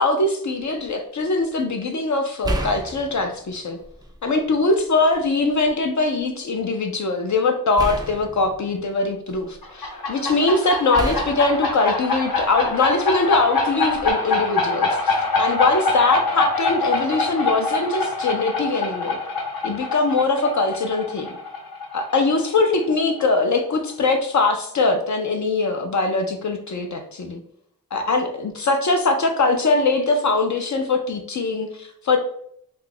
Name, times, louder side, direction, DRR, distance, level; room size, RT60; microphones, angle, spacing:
voice 1, 0.0-3.8 4.2-19.2 19.6-21.3 21.9-27.4 27.9-32.2, left 3 dB, 55° left, 4 dB, 0.5 m, -22 dB
sound 1, 0.6-0.9 2.4-4.3 4.7-5.7 7.8-9.7 10.9-12.8 13.9-14.1, right 1 dB, 10° right, 0.3 m, -32 dB
sound 2, 9.6-23.0, left 3 dB, 70° left, 0.8 m, -25 dB
2.8 x 2.3 x 3.8 m, 0.68 s
wide cardioid pair, 85°, 36 cm